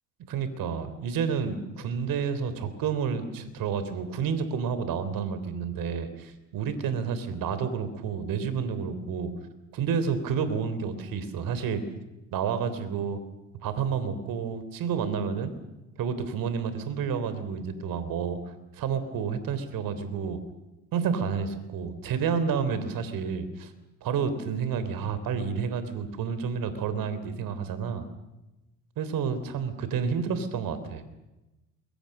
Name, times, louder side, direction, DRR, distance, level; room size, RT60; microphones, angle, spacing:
voice 1, 0.3-9.3 9.7-11.8 12.3-13.2 13.6-15.5 16.0-18.4 18.8-20.4 20.9-23.7 24.0-28.1 29.0-31.0, right 6 dB, 60° right, 12 dB, 3.6 m, -30 dB
28.0 x 22.5 x 6.7 m, 1.0 s
hypercardioid pair, 60°, 39 cm